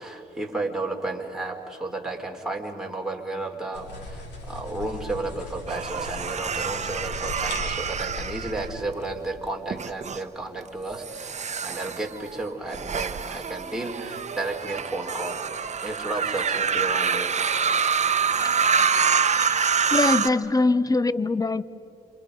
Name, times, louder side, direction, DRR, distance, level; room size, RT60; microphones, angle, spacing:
voice 1, 0.0-15.4 15.8-17.4, right 2 dB, 5° right, 0 dB, 4.1 m, -33 dB
sound 1, 3.7-8.8, left 2 dB, 85° left, 6.0 m, -38 dB
sound 2, 5.7-9.1 9.7-10.2 10.9-20.3, right 6 dB, 40° right, 1.0 m, -26 dB
voice 2, 19.9-21.6, left 3 dB, 20° left, 16 dB, 0.9 m, -23 dB
28.5 x 27.0 x 5.3 m, 2.5 s
cardioid pair, 65°, 17 cm